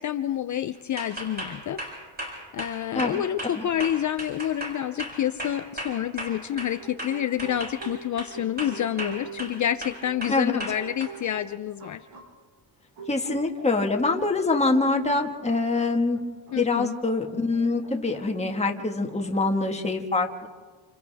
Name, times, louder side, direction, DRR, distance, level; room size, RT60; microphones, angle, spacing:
voice 1, 0.0-1.8 2.5-12.1 16.5-17.0, left 11 dB, 40° left, 10 dB, 0.5 m, -28 dB
sound 1, 1.0-6.7 7.0-8.3 8.6-9.5 9.8-11.1, equal, 20° right, 8.0 m, -35 dB
sound 2, 5.8-6.1 6.5-12.3 13.0-17.0 17.2-19.9, right 4 dB, 75° right, 6.2 m, -45 dB
voice 2, 13.1-16.2 16.5-20.5, left 3 dB, 15° left, 3 dB, 1.6 m, -25 dB
29.5 x 28.5 x 3.5 m, 1.5 s
cardioid pair, 150°, 48 cm